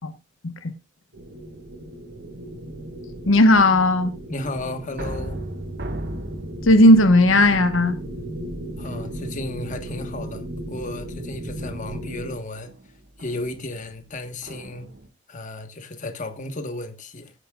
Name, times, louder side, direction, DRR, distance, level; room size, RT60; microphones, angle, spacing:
sound 1, 1.1-12.4, right 1 dB, 90° right, 4.5 m, -35 dB
voice 1, 3.3-4.1 6.6-7.9, left 1 dB, 80° left, 1.3 m, -15 dB
voice 2, 4.3-5.4 8.8-10.4 10.7-12.7 13.2-14.9 15.3-17.3, left 2 dB, 40° left, 1.5 m, -33 dB
sound 2, 4.7-8.3 8.8-9.4 9.9-10.3 11.7-15.1, right 1 dB, 55° right, 1.7 m, -38 dB
17.0 x 9.9 x 2.5 m
head